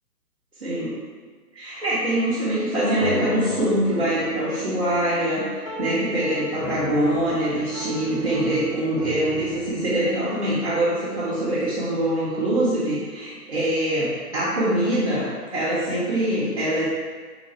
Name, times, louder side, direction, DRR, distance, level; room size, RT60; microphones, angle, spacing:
voice 1, 0.6-0.9 1.5-16.9, right 1 dB, 40° right, -10 dB, 0.8 m, -24 dB
sound 1, 3.0-11.7, left 1 dB, 70° left, 1.0 m, -35 dB
3.8 x 2.1 x 4.1 m, 1.6 s
hypercardioid pair, 180°, 48 cm